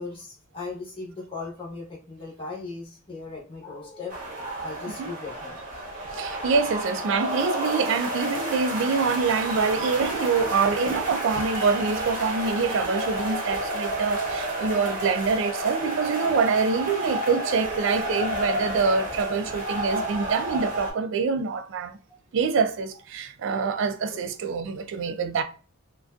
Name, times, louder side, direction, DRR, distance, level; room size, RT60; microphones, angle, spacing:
voice 1, 0.0-5.6 24.1-24.2, left 4 dB, 25° left, 0.8 m, -38 dB
sound 1, 4.1-20.9, right 1 dB, 40° right, 0.7 m, -30 dB
voice 2, 6.1-21.9 22.3-25.4, right 5 dB, 60° right, 0.3 m, -25 dB
2.4 x 2.2 x 2.3 m
head